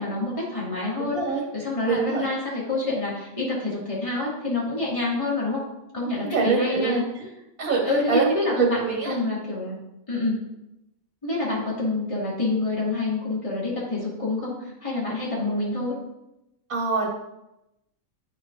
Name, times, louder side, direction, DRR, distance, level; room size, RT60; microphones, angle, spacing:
voice 1, 0.0-1.2 1.5-5.6 5.9-7.0 7.8-9.8 10.1-10.4 11.2-15.9, left 2 dB, 25° left, -6 dB, 2.1 m, -27 dB
voice 2, 1.0-1.4 1.9-2.3 6.0-7.3 7.6-9.2 16.7-17.1, right 4 dB, 80° right, -2 dB, 1.8 m, -25 dB
11.0 x 4.6 x 2.5 m, 0.91 s
omnidirectional pair, 1.4 m